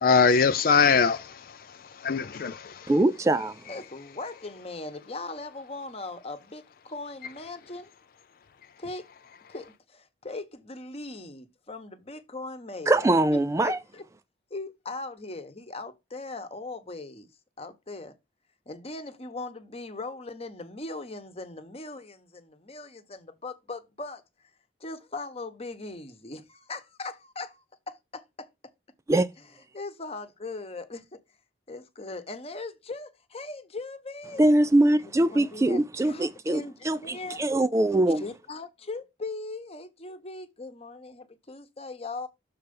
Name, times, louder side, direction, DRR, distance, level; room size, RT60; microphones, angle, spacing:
voice 1, 0.0-2.9, left 5 dB, 50° left, 0.4 m, -23 dB
voice 2, 2.9-3.5 12.9-13.8 29.1-29.3 34.4-38.2, right 1 dB, 15° right, 0.3 m, -22 dB
voice 3, 3.7-7.9 8.8-9.1 9.5-14.0 14.5-17.3 17.6-18.1 18.7-24.5 24.8-28.5 29.7-31.2 31.7-34.4 35.0-37.4 38.2-42.3, left 3 dB, 35° left, 1.0 m, -39 dB
6.7 x 4.3 x 5.2 m
head